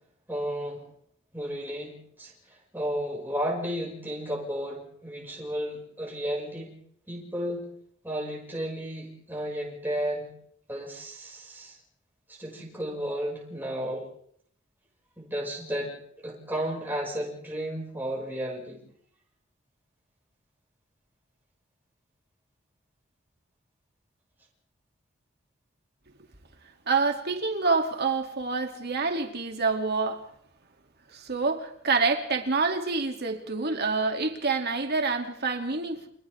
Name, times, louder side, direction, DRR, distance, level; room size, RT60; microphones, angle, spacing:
voice 1, 0.3-0.9 1.3-6.7 7.1-7.6 8.0-10.3 10.7-11.8 12.3-14.1 15.2-18.8, equal, 10° right, 6.0 m, -33 dB
voice 2, 26.9-30.2 31.1-36.1, right 4 dB, 55° right, 2.8 m, -27 dB
29.5 x 26.5 x 3.6 m
head